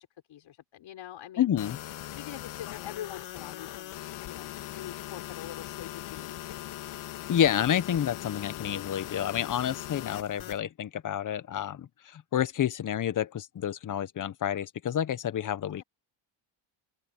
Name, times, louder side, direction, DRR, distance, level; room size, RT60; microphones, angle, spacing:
voice 1, 0.0-1.5 2.2-6.8, left 11 dB, 65° left, 5.4 m, -45 dB
voice 2, 1.4-1.8 7.3-15.8, left 10 dB, 40° left, 0.9 m, -29 dB
sound 1, 1.6-10.6, left 14 dB, 80° left, 3.2 m, -40 dB
open air
cardioid pair, 120°, 49 cm